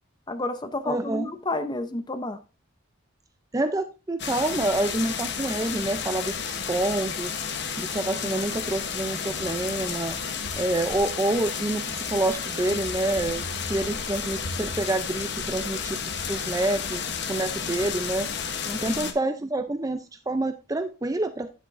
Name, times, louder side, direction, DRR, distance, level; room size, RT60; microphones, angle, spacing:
voice 1, 0.3-2.4 18.6-19.1, left 2 dB, 20° left, 10 dB, 0.7 m, -31 dB
voice 2, 0.8-1.3 3.5-7.4 7.8-10.2 10.6-18.3 18.8-21.5, right 2 dB, 15° right, 9 dB, 0.4 m, -28 dB
sound 1, 4.2-19.1, left 6 dB, 50° left, 1.0 m, -32 dB
9.5 x 7.8 x 2.5 m, 0.32 s
head